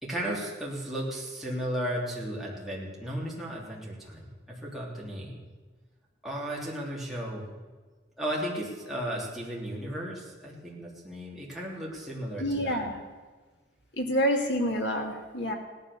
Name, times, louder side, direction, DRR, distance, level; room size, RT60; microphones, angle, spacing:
voice 1, 0.0-5.4 6.2-7.5 8.2-12.8, equal, ahead, -5 dB, 3.3 m, -35 dB
voice 2, 12.4-13.0 13.9-15.5, equal, 65° left, 3 dB, 2.5 m, -28 dB
17.0 x 12.0 x 6.9 m, 1.4 s
head